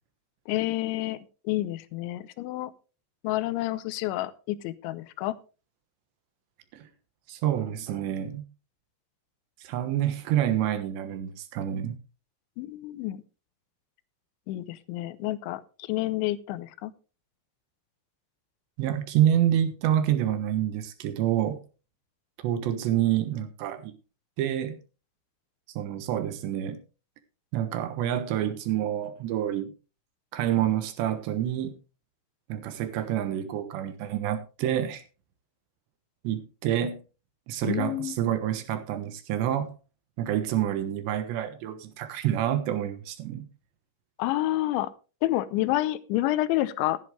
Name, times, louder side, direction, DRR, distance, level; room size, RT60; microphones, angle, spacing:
voice 1, 0.5-2.7 3.2-5.4 12.6-13.2 14.5-16.9 37.6-38.2 44.2-44.9 45.2-47.0, left 16 dB, 80° left, 3.0 m, -29 dB
voice 2, 7.3-8.4 9.6-12.0 18.8-21.6 22.4-23.9 24.4-24.8 25.8-26.8 27.5-29.7 30.3-31.7 32.5-35.0 36.2-37.0 37.5-39.7 40.2-43.4, right 11 dB, 70° right, 3.2 m, -27 dB
14.5 x 11.0 x 3.3 m
omnidirectional pair, 5.6 m